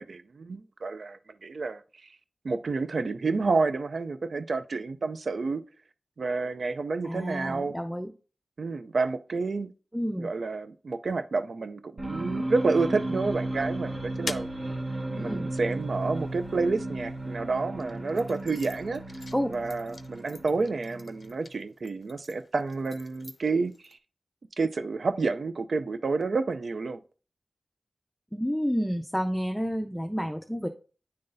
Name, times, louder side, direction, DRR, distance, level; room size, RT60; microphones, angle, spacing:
voice 1, 0.0-1.8 2.4-5.6 6.2-7.7 8.6-9.7 10.2-14.5 15.1-19.0 19.5-24.0 24.6-27.0, right 3 dB, 80° right, 0.3 m, -29 dB
voice 2, 7.0-8.1 9.9-10.3 15.2-15.5 19.3-19.5 28.3-30.7, equal, 5° left, 0.4 m, -30 dB
sound 1, 12.0-21.6, right 1 dB, 55° right, 1.1 m, -35 dB
sound 2, 13.5-17.1 17.7-24.0, left 3 dB, 65° left, 0.4 m, -45 dB
9.4 x 3.8 x 2.6 m
wide cardioid pair, 60°, 0 cm